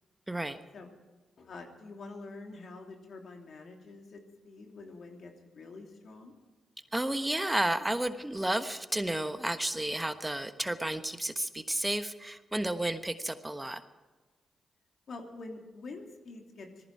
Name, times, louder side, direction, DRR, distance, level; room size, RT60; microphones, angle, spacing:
voice 1, 0.3-0.6 6.9-13.8, right 1 dB, 15° right, 10 dB, 1.2 m, -32 dB
voice 2, 1.4-6.3 15.1-16.8, left 3 dB, 60° left, 2 dB, 2.9 m, -46 dB
19.0 x 14.5 x 4.8 m, 1.3 s
hypercardioid pair, 40°, 0 cm